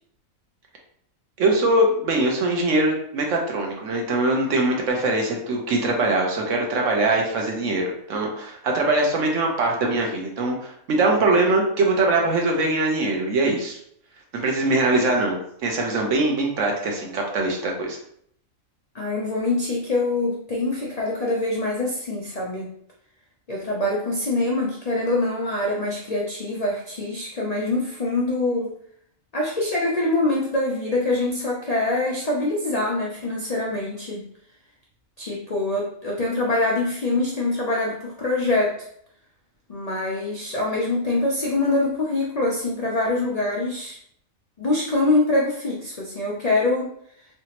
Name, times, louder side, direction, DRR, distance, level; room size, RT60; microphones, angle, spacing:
voice 1, 1.4-13.8 14.3-18.0, right 2 dB, 65° right, 1 dB, 1.0 m, -22 dB
voice 2, 18.9-22.7 23.5-28.7 29.3-34.2 35.2-38.9 39.7-44.0 44.6-47.0, left 2 dB, 55° left, -4 dB, 0.4 m, -24 dB
3.3 x 2.9 x 2.9 m, 0.68 s
omnidirectional pair, 1.4 m